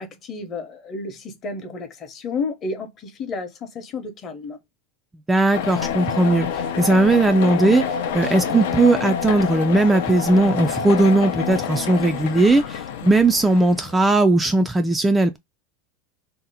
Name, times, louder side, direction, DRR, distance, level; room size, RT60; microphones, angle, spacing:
voice 1, 0.0-4.6, left 4 dB, 35° left, 0.9 m, -31 dB
voice 2, 5.3-7.8 8.1-15.4, right 2 dB, 10° right, 0.3 m, -18 dB
sound 1, 5.5-14.1, left 8 dB, 75° left, 0.6 m, -27 dB
2.7 x 2.0 x 4.0 m
supercardioid pair, 130°, 0 cm